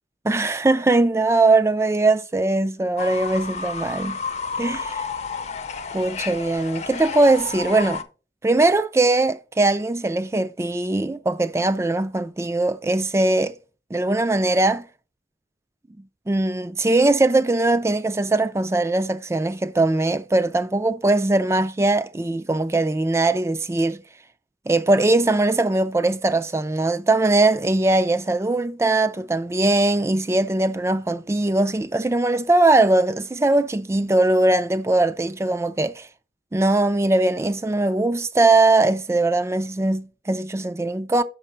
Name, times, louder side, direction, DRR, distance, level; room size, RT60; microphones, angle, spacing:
voice 1, 0.2-4.2 4.6-5.1 5.9-8.0 8.4-13.5 13.9-14.8 16.3-24.0 24.7-36.1 36.5-41.2, right 2 dB, 15° right, 0.3 m, -20 dB
Fowl / Bird, 3.0-8.0, left 5 dB, 40° left, 0.6 m, -31 dB
5.8 x 5.5 x 4.3 m
head